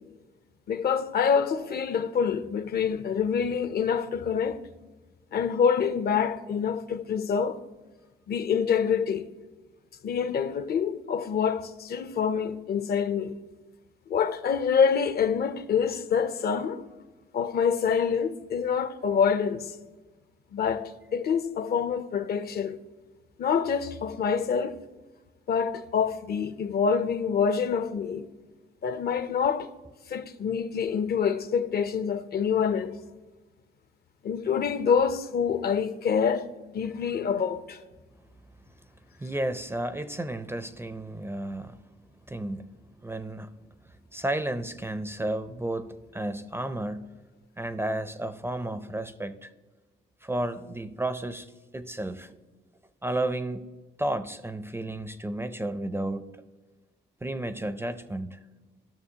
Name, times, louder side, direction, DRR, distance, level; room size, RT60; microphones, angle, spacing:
voice 1, 0.7-4.6 5.3-7.6 8.3-9.3 10.0-13.3 14.1-16.8 17.3-19.7 20.5-22.8 23.4-24.8 25.5-28.3 28.8-29.7 30.1-33.0 34.2-36.5 36.7-37.8, left 6 dB, 50° left, 0.5 m, -26 dB
voice 2, 39.2-41.9 42.3-42.7 43.0-43.6 44.1-47.2 47.6-49.5 50.2-51.5 51.7-52.4 53.0-53.6 54.0-56.3 57.2-58.4, right 1 dB, 10° right, 0.4 m, -32 dB
13.0 x 6.3 x 2.8 m
cardioid pair, 90°, 20 cm